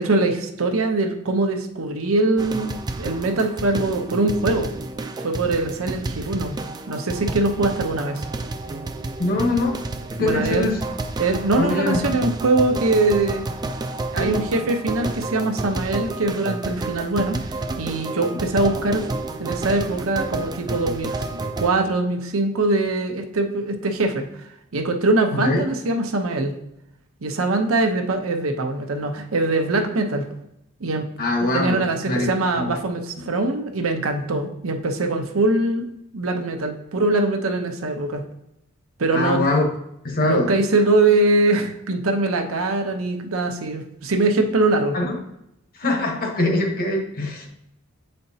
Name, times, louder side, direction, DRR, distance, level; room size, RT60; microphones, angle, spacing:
voice 1, 0.0-4.7 5.2-6.6 6.9-8.2 10.2-10.7 11.2-13.4 14.1-17.4 17.8-19.0 19.4-21.2 21.6-24.3 24.7-26.5 27.2-30.3 30.8-31.1 31.4-35.9 36.1-38.2 39.0-39.4 40.2-45.0, right 2 dB, 85° right, 4 dB, 0.8 m, -22 dB
sound 1, 2.4-21.7, right 2 dB, 20° right, 0.3 m, -30 dB
voice 2, 9.2-9.8 10.2-10.8 11.6-12.0 14.2-14.3 25.3-25.6 31.2-32.7 33.2-33.3 39.1-39.6 40.0-40.5 44.9-45.2 45.7-47.5, left 2 dB, 45° left, 2 dB, 1.0 m, -23 dB
7.8 x 4.3 x 2.7 m, 0.82 s
head